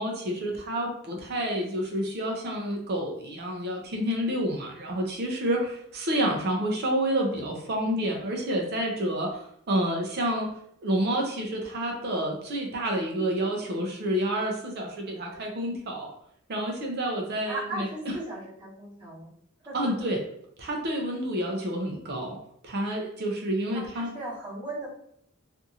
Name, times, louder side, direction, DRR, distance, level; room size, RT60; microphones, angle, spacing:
voice 1, 0.0-10.5 10.8-16.1 16.5-17.9 19.7-20.2 20.6-22.4 22.6-24.1, right 1 dB, 50° right, 1 dB, 0.5 m, -29 dB
voice 2, 17.5-19.3 19.6-20.0 23.7-24.9, right 1 dB, 20° right, -8 dB, 1.1 m, -37 dB
2.6 x 2.4 x 2.7 m, 0.70 s
head